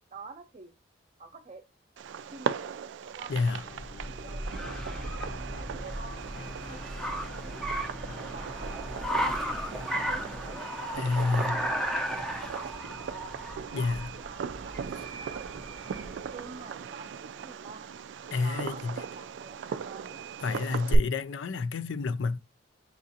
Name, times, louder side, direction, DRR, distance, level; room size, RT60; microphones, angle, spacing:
voice 1, 0.1-0.7 1.2-1.6 2.3-2.8 3.1-3.6 4.2-9.2 9.7-13.4 13.7-17.9 18.4-21.0, right 4 dB, 40° right, 0.6 m, -49 dB
Fireworks, 2.0-21.0, right 5 dB, 75° right, 0.3 m, -38 dB
voice 2, 3.3-3.6 11.0-11.6 13.7-14.1 18.3-19.0 20.4-22.4, left 4 dB, 85° left, 0.4 m, -29 dB
sound 1, 3.6-10.5, equal, 70° left, 0.8 m, -42 dB
Car, 3.8-16.3, equal, ahead, 0.5 m, -36 dB
6.7 x 2.5 x 2.7 m
head